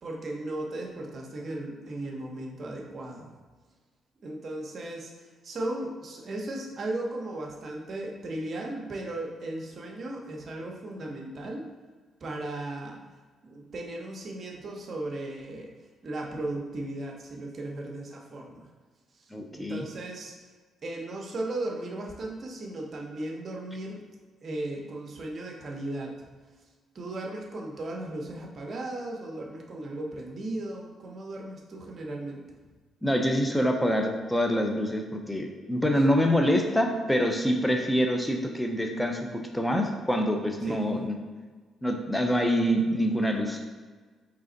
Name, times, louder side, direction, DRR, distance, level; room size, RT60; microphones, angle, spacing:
voice 1, 0.0-3.3 4.2-11.7 12.2-13.0 13.4-15.7 16.0-18.7 19.1-20.4 20.8-24.0 24.4-26.3 26.9-32.4 40.6-40.9, right 2 dB, 45° right, 0 dB, 0.8 m, -36 dB
voice 2, 19.3-19.9 33.0-41.1 41.8-43.6, equal, 5° left, 3 dB, 0.6 m, -26 dB
3.9 x 3.3 x 3.9 m, 1.4 s
cardioid pair, 90°, 0 cm